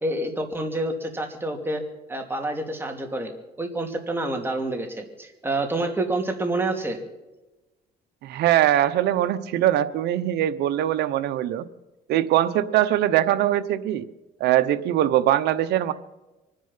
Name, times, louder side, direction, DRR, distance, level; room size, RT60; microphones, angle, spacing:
voice 1, 0.0-1.8 2.1-3.3 3.6-7.0, right 2 dB, 15° right, 3 dB, 2.8 m, -28 dB
voice 2, 8.2-11.7 12.1-14.1 14.4-15.9, right 12 dB, 75° right, 11 dB, 1.0 m, -22 dB
24.5 x 10.0 x 5.7 m, 1.1 s
cardioid pair, 110°, 17 cm